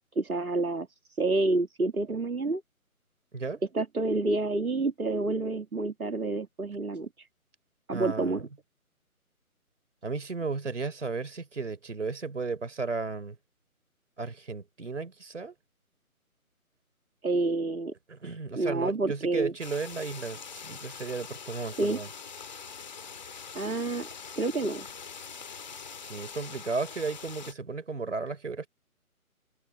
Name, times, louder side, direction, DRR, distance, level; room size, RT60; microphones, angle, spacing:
voice 1, 0.2-0.9 1.2-2.6 3.7-7.3 7.9-8.5 17.2-17.9 18.6-19.5 21.8-22.0 23.5-24.1 24.4-24.9, right 2 dB, 75° right, 1.9 m, -28 dB
voice 2, 3.3-3.6 7.9-8.4 10.0-13.4 14.2-15.5 18.1-22.1 26.0-28.7, right 4 dB, 55° right, 3.9 m, -34 dB
sound 1, 19.6-27.5, left 6 dB, 30° left, 2.2 m, -43 dB
figure-of-eight pair, 150°, 44 cm